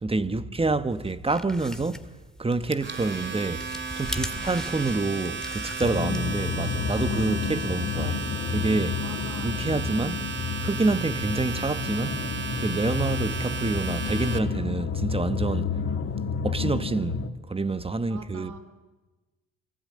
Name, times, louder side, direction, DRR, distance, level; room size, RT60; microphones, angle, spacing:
voice 1, 0.0-2.1 2.4-9.0 9.4-10.2 10.6-12.3 12.6-16.0 16.4-18.5, right 3 dB, 20° right, 1.3 m, -28 dB
sound 1, 1.0-6.5, left 1 dB, ahead, 1.9 m, -40 dB
Domestic sounds home sounds, 2.5-14.4, right 5 dB, 40° right, 2.3 m, -34 dB
sound 2, 5.8-17.3, left 5 dB, 50° left, 2.4 m, -30 dB
voice 2, 9.0-9.6 9.9-10.1 18.1-18.6, right 4 dB, 75° right, 3.7 m, -45 dB
28.5 x 21.0 x 9.8 m
cardioid pair, 90°, 30 cm